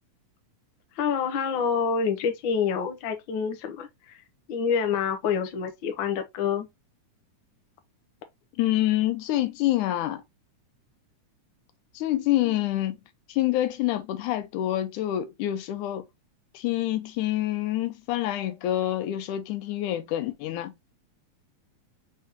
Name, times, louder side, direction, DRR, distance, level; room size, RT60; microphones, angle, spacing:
voice 1, 1.0-4.2 4.5-6.7, left 6 dB, 65° left, 1.2 m, -27 dB
voice 2, 8.6-10.2 12.0-13.0 13.3-16.1 16.5-20.7, left 14 dB, 80° left, 2.2 m, -27 dB
5.3 x 3.7 x 2.7 m
omnidirectional pair, 3.5 m